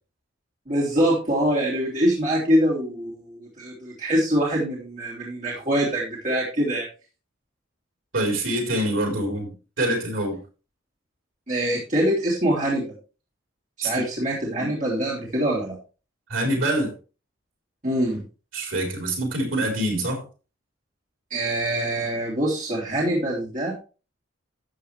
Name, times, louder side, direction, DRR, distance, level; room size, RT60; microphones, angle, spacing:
voice 1, 0.7-6.8 11.5-12.9 13.8-15.8 17.8-18.2 21.3-23.7, right 1 dB, 40° right, 3.2 m, -24 dB
voice 2, 8.1-9.5 9.8-10.4 13.8-14.0 16.3-16.9 18.5-20.2, right 1 dB, 75° right, 3.9 m, -25 dB
12.5 x 8.2 x 3.3 m
head